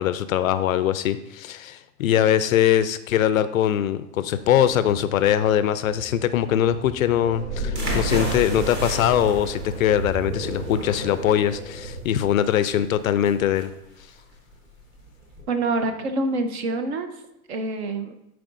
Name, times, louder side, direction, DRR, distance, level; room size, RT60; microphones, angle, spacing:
voice 1, 0.0-13.7, left 10 dB, 60° left, 13 dB, 0.5 m, -22 dB
sound 1, 4.4-12.0, right 1 dB, 75° right, 2.7 m, -33 dB
sound 2, 7.7-15.4, right 1 dB, 20° right, 1.1 m, -35 dB
voice 2, 15.5-17.1 17.5-18.1, right 2 dB, 40° right, 8 dB, 0.7 m, -26 dB
11.0 x 4.7 x 2.6 m, 0.86 s
hypercardioid pair, 160°, 48 cm